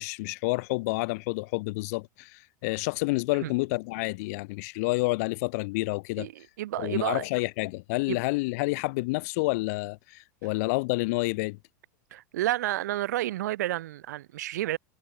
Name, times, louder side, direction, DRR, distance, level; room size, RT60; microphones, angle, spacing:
voice 1, 0.0-6.3 6.8-11.6, left 25 dB, 65° left, 0.9 m, -29 dB
voice 2, 6.2-7.3 8.1-8.2 12.1-14.8, right 14 dB, 80° right, 1.2 m, -30 dB
supercardioid pair, 120°, 9 cm